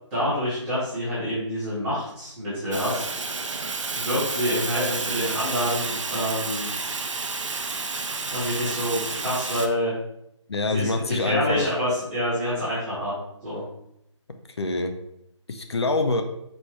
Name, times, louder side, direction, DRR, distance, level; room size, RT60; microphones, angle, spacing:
voice 1, 0.1-3.1 3.9-6.7 8.3-9.9 10.7-13.1 13.4-13.6, equal, 5° right, -14 dB, 0.5 m, -27 dB
Fire, 2.7-9.7, right 4 dB, 75° right, 0.6 m, -30 dB
voice 2, 10.5-11.7 14.6-14.9 15.5-16.2, left 3 dB, 60° left, 6 dB, 0.5 m, -25 dB
4.3 x 2.1 x 4.6 m, 0.78 s
figure-of-eight pair, 170°, 16 cm